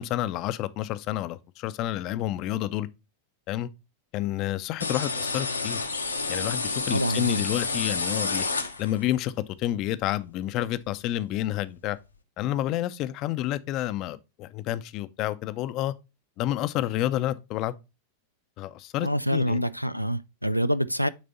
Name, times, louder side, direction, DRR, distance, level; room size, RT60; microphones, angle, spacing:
voice 1, 0.0-2.9 3.5-3.7 4.1-5.8 6.3-8.4 8.8-9.3 9.6-12.0 12.4-15.9 16.4-17.7 18.6-19.6, left 14 dB, 40° left, 0.5 m, -29 dB
sound 1, 4.8-9.1, left 4 dB, 80° left, 0.8 m, -30 dB
voice 2, 6.9-7.4 19.0-21.1, equal, 90° right, 0.3 m, -26 dB
8.7 x 3.4 x 4.0 m
figure-of-eight pair, 90°, 0 cm